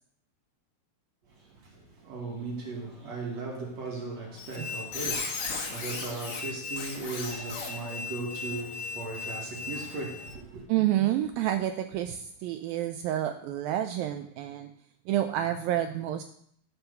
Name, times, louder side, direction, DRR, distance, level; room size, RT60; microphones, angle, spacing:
voice 1, 1.2-10.7, right 3 dB, 50° right, 2.6 m, -37 dB
Squeak, 4.4-10.3, left 4 dB, 60° left, 3.2 m, -36 dB
voice 2, 10.7-14.7 15.1-16.2, right 12 dB, 80° right, 2.1 m, -29 dB
13.0 x 5.8 x 6.8 m
omnidirectional pair, 4.7 m